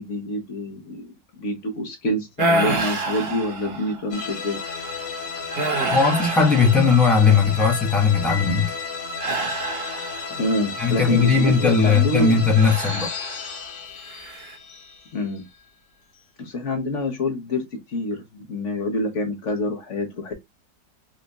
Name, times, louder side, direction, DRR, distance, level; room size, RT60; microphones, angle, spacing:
voice 1, 0.0-4.6 10.4-12.4 15.1-15.5 16.4-17.6 17.9-20.3, left 1 dB, 50° left, 1.0 m, -26 dB
sound 1, 2.4-4.1 4.7-4.9 5.5-7.4 9.2-10.5 12.6-13.7 14.1-14.5, right 2 dB, 50° right, 0.7 m, -27 dB
Starting movie, 4.1-15.5, left 5 dB, 70° left, 1.4 m, -33 dB
voice 2, 5.9-8.7 10.8-13.1, left 5 dB, ahead, 0.7 m, -18 dB
3.9 x 2.9 x 2.7 m
omnidirectional pair, 2.0 m